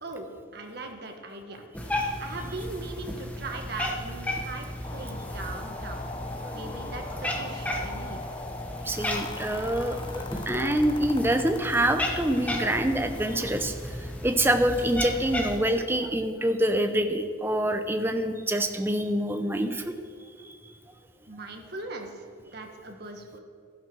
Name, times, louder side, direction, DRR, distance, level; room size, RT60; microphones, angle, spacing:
voice 1, 0.5-1.6 2.2-6.1 6.5-8.2 21.3-22.3 22.5-23.4, right 2 dB, 50° right, 3 dB, 1.4 m, -39 dB
Cat, 1.7-15.6, left 1 dB, 5° left, 1.1 m, -34 dB
sound 1, 4.8-13.6, left 3 dB, 25° left, 0.7 m, -41 dB
voice 2, 6.4-6.8 8.8-19.9 20.4-20.5, right 1 dB, 10° right, 7 dB, 0.7 m, -26 dB
12.5 x 11.0 x 6.2 m, 2.2 s
head